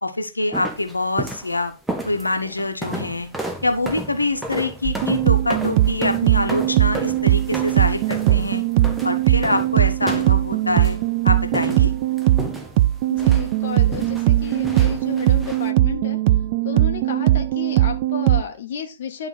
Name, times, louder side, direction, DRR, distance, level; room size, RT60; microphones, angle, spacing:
voice 1, 0.0-1.7 2.0-3.3 3.6-8.6 9.0-11.0 11.2-11.9, left 2 dB, 85° left, 6 dB, 1.0 m, -24 dB
sound 1, 0.5-1.5 1.9-11.1 11.5-12.9 13.2-15.7, right 1 dB, 5° right, 0.9 m, -33 dB
sound 2, 4.8-18.4, right 15 dB, 40° right, 0.3 m, -19 dB
voice 2, 13.1-16.2 16.6-19.3, left 7 dB, 55° left, 5 dB, 0.9 m, -32 dB
10.5 x 3.8 x 4.0 m, 0.30 s
figure-of-eight pair, 110°, 0 cm